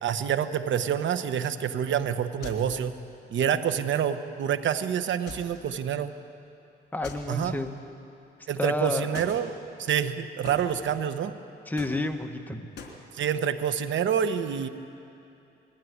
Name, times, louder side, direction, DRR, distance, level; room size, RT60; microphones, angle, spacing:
voice 1, 0.0-2.9 3.3-6.1 7.3-7.6 8.5-9.5 9.8-11.3 13.1-14.7, right 8 dB, 70° right, 10 dB, 1.1 m, -27 dB
sound 1, 2.4-3.0 5.3-5.8 7.0-7.9 9.1-9.5 10.5-11.1 11.8-12.4 12.8-13.0, left 4 dB, 55° left, 3.2 m, -42 dB
voice 2, 6.9-7.7 8.6-9.2 11.7-12.7, left 1 dB, 10° left, 5 dB, 1.3 m, -30 dB
20.5 x 16.0 x 9.5 m, 2.8 s
cardioid pair, 100°, 20 cm